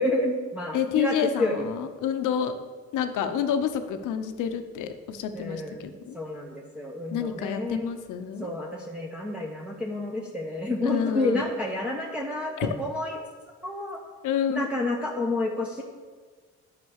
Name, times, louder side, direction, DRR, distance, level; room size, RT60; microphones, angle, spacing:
voice 1, 0.0-1.7 5.3-7.9 8.4-13.2 13.6-14.0 14.5-15.8, left 2 dB, 5° right, -3 dB, 1.1 m, -29 dB
voice 2, 0.7-2.6 2.9-6.2 7.1-8.5 10.8-11.5 12.6-12.7 14.2-14.7, left 8 dB, 85° left, 8 dB, 0.9 m, -29 dB
9.5 x 5.9 x 6.5 m, 1.5 s
cardioid pair, 90°, 30 cm